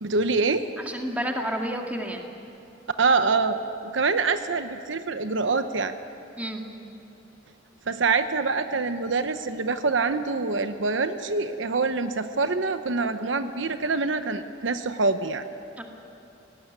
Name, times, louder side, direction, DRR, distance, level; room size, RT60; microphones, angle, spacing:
voice 1, 0.0-0.7 3.0-5.9 7.9-15.5, right 4 dB, 75° right, 9 dB, 0.9 m, -25 dB
voice 2, 0.9-2.2 6.4-6.6 15.8-15.9, equal, 10° right, 2 dB, 2.0 m, -30 dB
18.5 x 17.0 x 9.6 m, 2.8 s
head